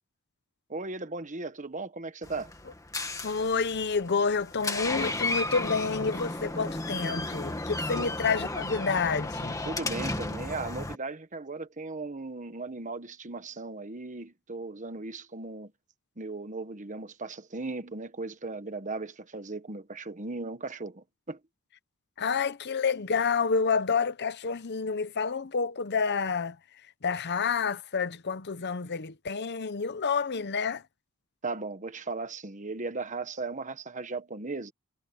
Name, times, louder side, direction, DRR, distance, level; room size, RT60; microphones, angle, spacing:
voice 1, 0.7-2.5 7.9-8.1 9.6-15.7 16.2-21.4 31.4-34.7, right 3 dB, 35° right, 1.4 m, -37 dB
Door, 2.2-10.9, left 2 dB, 15° left, 1.9 m, -34 dB
voice 2, 3.2-9.6 22.2-26.6 27.0-30.8, left 5 dB, 50° left, 0.8 m, -29 dB
head